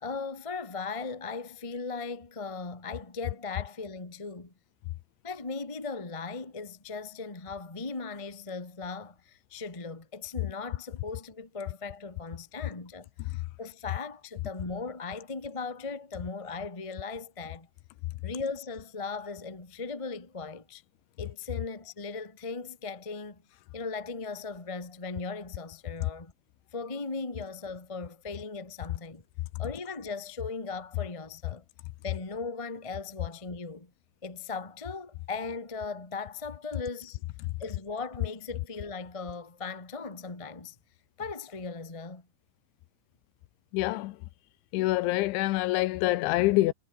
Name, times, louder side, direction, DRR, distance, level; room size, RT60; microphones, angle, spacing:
voice 1, 0.0-4.5 5.2-17.7 18.2-20.8 21.2-23.4 23.7-26.3 26.7-29.2 29.6-31.6 32.0-33.9 34.2-37.2 37.6-40.7 41.2-42.3, left 4 dB, 40° left, 0.4 m, -38 dB
voice 2, 43.7-44.2 44.7-46.7, left 18 dB, 80° left, 3.2 m, -26 dB
omnidirectional pair, 5.5 m